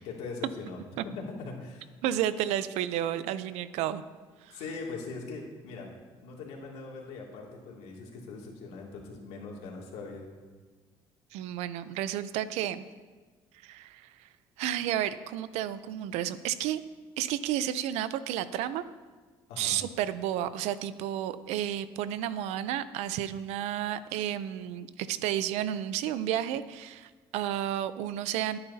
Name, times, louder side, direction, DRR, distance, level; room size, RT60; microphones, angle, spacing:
voice 1, 0.0-1.9 4.5-5.9 6.2-10.2 19.5-19.7, left 4 dB, 80° left, -1 dB, 2.5 m, -41 dB
voice 2, 2.0-4.0 4.4-4.6 11.3-12.8 13.6-14.3 14.6-16.8 17.2-18.8 19.6-28.6, right 11 dB, 85° right, 14 dB, 0.6 m, -32 dB
19.5 x 9.7 x 2.8 m, 1.4 s
cardioid pair, 90°, 11 cm